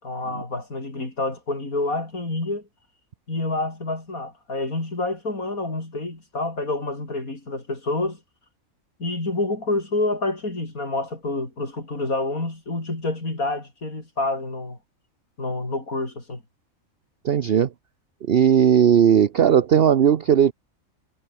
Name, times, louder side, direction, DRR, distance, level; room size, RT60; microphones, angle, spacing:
voice 1, 0.0-2.7 3.3-8.2 9.0-14.8 15.4-16.4, left 2 dB, 90° left, 6.0 m, -28 dB
voice 2, 17.2-17.7 18.2-20.5, right 8 dB, 50° right, 0.9 m, -17 dB
omnidirectional pair, 1.4 m